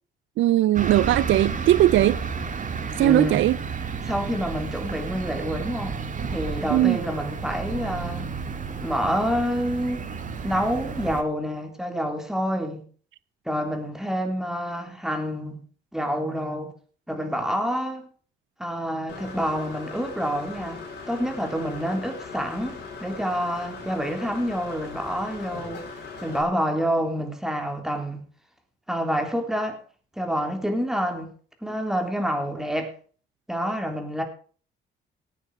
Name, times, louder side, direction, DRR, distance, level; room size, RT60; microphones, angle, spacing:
voice 1, 0.4-2.2 3.0-3.6 6.7-7.0, right 14 dB, 75° right, 0.5 m, -19 dB
sound 1, 0.7-11.2, right 5 dB, 40° right, 2.1 m, -32 dB
voice 2, 3.0-3.4 4.1-6.0 6.3-8.3 8.8-10.1 10.4-12.8 13.5-15.6 15.9-16.7 17.1-18.1 18.6-20.8 21.1-25.8 26.2-28.3 28.9-29.8 30.2-31.3 31.6-32.9 33.5-34.2, equal, ahead, 3.7 m, -27 dB
Engine / Mechanisms, 19.1-26.4, left 4 dB, 60° left, 6.4 m, -39 dB
18.0 x 9.4 x 5.0 m
cardioid pair, 90°, 20 cm